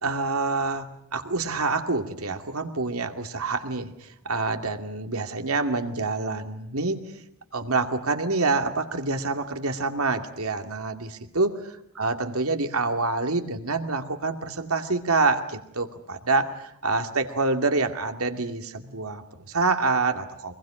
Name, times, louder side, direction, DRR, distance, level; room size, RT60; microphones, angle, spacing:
voice 1, 0.0-7.1 7.5-11.6 11.9-20.5, right 3 dB, 90° right, 6 dB, 2.4 m, -27 dB
25.0 x 22.0 x 8.9 m, 0.76 s
head